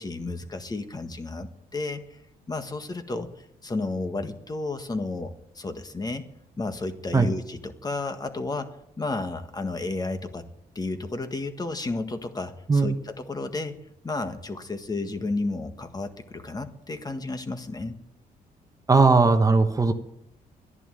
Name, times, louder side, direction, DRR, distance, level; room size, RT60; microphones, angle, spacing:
voice 1, 0.0-2.2 2.5-6.3 6.6-10.5 10.7-13.8 14.0-17.9, left 3 dB, 25° left, 8 dB, 1.7 m, -32 dB
voice 2, 18.9-19.9, right 3 dB, 20° right, 7 dB, 1.1 m, -18 dB
12.5 x 11.0 x 9.1 m, 0.78 s
cardioid pair, 100°, 16 cm